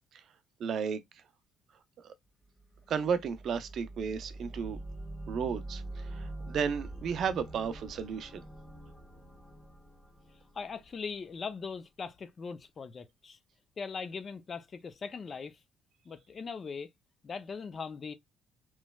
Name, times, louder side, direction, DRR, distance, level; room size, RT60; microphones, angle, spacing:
voice 1, 0.6-1.0 2.0-2.1 2.9-4.8 5.3-8.4, right 6 dB, 60° right, 0.5 m, -33 dB
sound 1, 2.6-11.4, right 2 dB, 10° left, 1.5 m, -45 dB
voice 2, 10.5-13.4 13.8-15.6 16.1-16.9 17.2-18.1, left 5 dB, 40° left, 0.5 m, -40 dB
3.1 x 3.1 x 2.2 m
cardioid pair, 95°, 0 cm